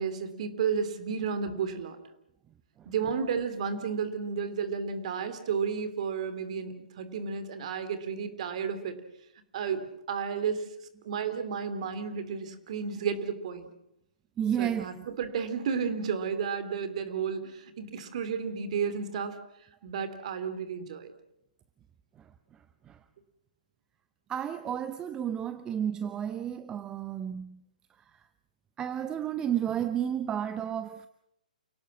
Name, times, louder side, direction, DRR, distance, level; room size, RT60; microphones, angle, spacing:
voice 1, 0.0-2.0 2.9-9.0 9.5-10.7 11.0-13.7 14.6-19.4 19.8-21.1, right 6 dB, 50° right, 3.1 m, -32 dB
voice 2, 14.4-14.9 22.9-23.0 24.3-27.6 28.8-31.1, right 9 dB, 15° right, 0.8 m, -31 dB
29.0 x 18.0 x 7.3 m
figure-of-eight pair, 130°, 5 cm